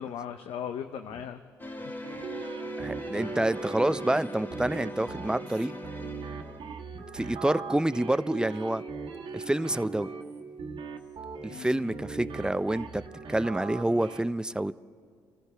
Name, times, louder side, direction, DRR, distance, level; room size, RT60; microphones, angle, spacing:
voice 1, 0.0-1.4 1.8-1.9 3.2-3.4 11.5-12.1, left 8 dB, 70° left, 0.7 m, -38 dB
sound 1, 1.6-6.8, left 2 dB, 20° left, 1.5 m, -41 dB
sound 2, 2.0-14.2, right 5 dB, 60° right, 1.5 m, -40 dB
voice 2, 2.8-5.7 7.1-8.8 9.3-10.1 11.5-13.0 13.3-14.7, right 1 dB, 10° right, 0.5 m, -28 dB
28.0 x 14.5 x 3.4 m
supercardioid pair, 60°, 10 cm